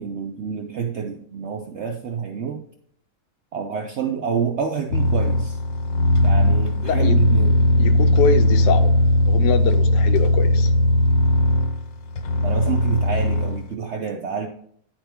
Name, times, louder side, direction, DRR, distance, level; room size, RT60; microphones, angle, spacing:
voice 1, 0.0-2.6 3.5-5.6 6.2-7.6 12.4-14.5, right 6 dB, 85° right, 4 dB, 0.6 m, -28 dB
sound 1, 4.9-13.6, left 1 dB, 65° left, 1.0 m, -18 dB
voice 2, 6.8-7.1 7.8-8.9 9.3-10.7, left 6 dB, 85° left, 7 dB, 1.3 m, -24 dB
10.0 x 4.4 x 3.4 m, 0.66 s
omnidirectional pair, 1.8 m